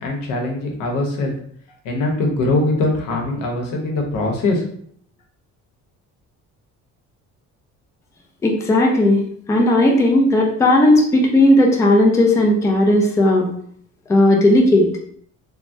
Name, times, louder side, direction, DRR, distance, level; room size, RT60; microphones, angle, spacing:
voice 1, 0.0-1.3 1.8-4.6, left 2 dB, 85° left, 1 dB, 0.8 m, -21 dB
voice 2, 8.4-9.2 9.5-13.5 14.1-14.9, left 1 dB, 10° left, 0 dB, 0.3 m, -15 dB
3.3 x 2.1 x 2.6 m, 0.62 s
cardioid pair, 155°, 32 cm